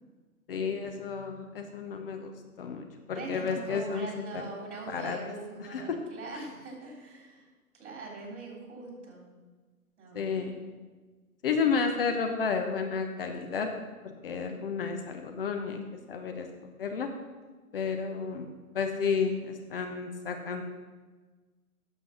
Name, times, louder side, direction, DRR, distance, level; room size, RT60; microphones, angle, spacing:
voice 1, 0.5-2.3 2.6-4.1 4.3-4.4 4.9-5.2 5.6-6.0 10.1-10.6 11.4-13.7 14.2-15.8 16.1-16.5 16.8-17.1 17.7-20.6, left 5 dB, 40° left, 5 dB, 0.9 m, -31 dB
voice 2, 3.1-7.4 7.7-9.2 10.0-10.5, right 3 dB, 50° right, 0 dB, 3.6 m, -42 dB
9.2 x 6.9 x 5.9 m, 1.3 s
figure-of-eight pair, 130°, 45 cm